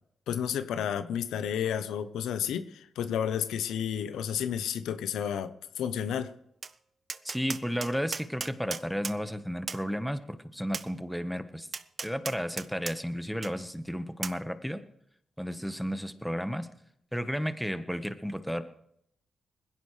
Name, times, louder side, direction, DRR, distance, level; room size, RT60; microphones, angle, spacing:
voice 1, 0.3-6.3, left 9 dB, 85° left, 11 dB, 0.8 m, -31 dB
Tap, 6.6-6.7 7.1-9.2 9.7-9.8 10.7-10.9 11.7-13.0 13.4-13.5 14.2-14.4, right 5 dB, 50° right, 0.7 m, -36 dB
voice 2, 7.2-11.7 12.0-14.8 15.4-16.7 17.1-18.6, equal, ahead, 10 dB, 1.3 m, -33 dB
20.5 x 16.0 x 3.3 m, 0.74 s
supercardioid pair, 55°, 0 cm